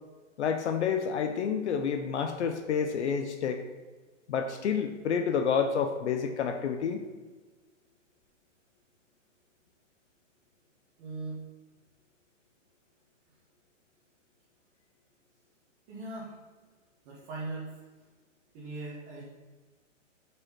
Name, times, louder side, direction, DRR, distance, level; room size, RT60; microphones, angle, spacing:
voice 1, 0.4-3.6 4.3-7.1, left 6 dB, 60° left, 7 dB, 0.7 m, -29 dB
voice 2, 11.0-11.4 15.9-16.4 17.0-17.8 18.5-19.2, right 2 dB, 25° right, -6 dB, 1.4 m, -39 dB
6.2 x 5.3 x 4.3 m, 1.3 s
hypercardioid pair, 160°, 38 cm